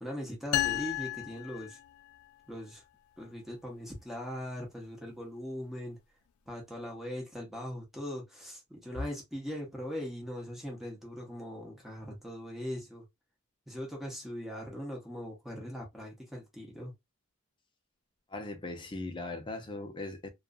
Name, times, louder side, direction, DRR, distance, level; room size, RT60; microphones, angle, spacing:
voice 1, 0.0-1.8 2.5-2.8 3.2-6.0 6.5-13.0 13.7-16.9, equal, ahead, 0.8 m, -40 dB
sound 1, 0.5-2.3, left 13 dB, 85° left, 0.3 m, -33 dB
voice 2, 18.3-20.3, left 2 dB, 20° left, 0.5 m, -39 dB
2.5 x 2.4 x 2.4 m
head